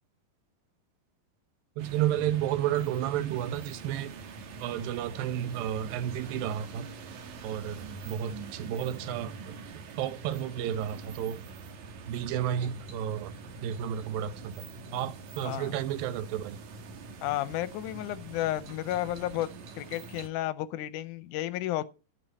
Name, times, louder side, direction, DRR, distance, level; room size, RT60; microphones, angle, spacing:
sound 1, 1.8-20.3, right 4 dB, 65° right, 2.4 m, -44 dB
voice 1, 1.8-4.1 4.6-6.9 7.4-11.4 12.1-13.4 13.6-14.7 14.9-16.6, right 11 dB, 90° right, 2.6 m, -32 dB
voice 2, 15.4-15.7 17.2-19.5 19.8-21.9, left 14 dB, 75° left, 2.0 m, -32 dB
11.5 x 8.7 x 4.2 m
omnidirectional pair, 4.0 m